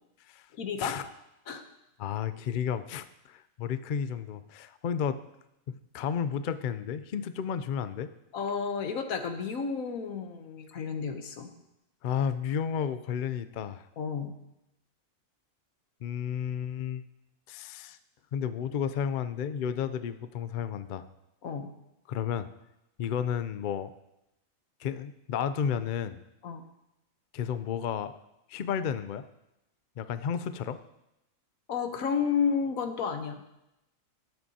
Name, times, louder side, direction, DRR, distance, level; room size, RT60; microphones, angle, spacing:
voice 1, 0.6-1.0 1.5-1.6 8.3-11.5 14.0-14.3 21.4-21.7 26.4-26.6 31.7-33.4, left 6 dB, 85° left, 7 dB, 1.4 m, -31 dB
voice 2, 2.0-5.2 5.7-8.1 12.0-13.9 16.0-17.0 17.5-18.0 18.3-21.0 22.1-22.5 23.0-23.9 24.8-26.2 27.3-28.1 28.5-29.2 30.0-30.8, left 8 dB, 65° left, 12 dB, 0.5 m, -32 dB
18.5 x 7.8 x 2.8 m, 0.89 s
omnidirectional pair, 1.4 m